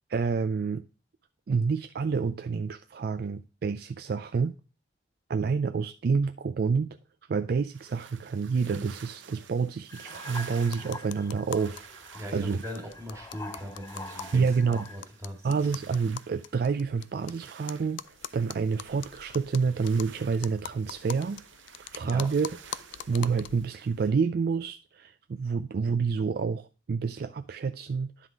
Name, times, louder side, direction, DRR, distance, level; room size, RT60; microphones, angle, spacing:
voice 1, 0.1-0.8 1.5-4.6 5.3-7.0 7.3-12.6 14.3-14.9 15.4-21.4 21.9-22.5 23.1-28.3, right 5 dB, 55° right, 0.3 m, -28 dB
sound 1, 7.7-24.1, right 8 dB, 85° right, 0.7 m, -51 dB
sound 2, 9.9-15.1 15.8-16.2, left 3 dB, 15° left, 0.4 m, -45 dB
sound 3, 10.6-11.8 12.1-12.2 12.4-12.5 12.7-17.3 17.7-23.7, left 10 dB, 80° left, 0.4 m, -42 dB
voice 2, 12.1-15.5 22.0-22.3, equal, 15° right, 2.0 m, -40 dB
9.9 x 3.9 x 4.6 m
head